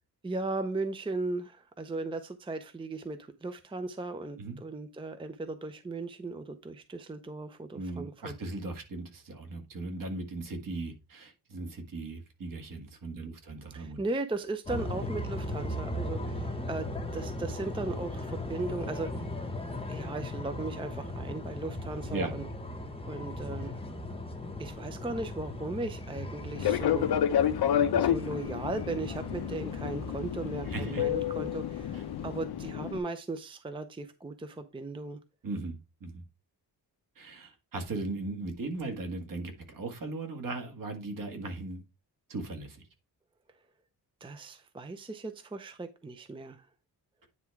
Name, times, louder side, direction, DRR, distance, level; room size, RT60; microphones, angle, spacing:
voice 1, 0.2-8.3 13.7-19.3 19.9-22.4 23.1-23.8 24.6-27.2 28.0-32.0 32.2-35.2 44.2-46.7, right 2 dB, 15° right, 9 dB, 0.6 m, -37 dB
voice 2, 7.7-14.0 22.1-22.3 30.6-31.1 31.9-32.0 35.4-36.2 37.1-41.8 42.3-42.8, right 2 dB, 55° right, 4 dB, 1.8 m, -38 dB
sound 1, 14.7-32.4, left 1 dB, 15° left, 1.0 m, -38 dB
Fixed-wing aircraft airplane, 26.6-33.0, left 10 dB, 70° left, 0.8 m, -30 dB
9.5 x 3.5 x 4.6 m, 0.27 s
wide cardioid pair, 145°, 40 cm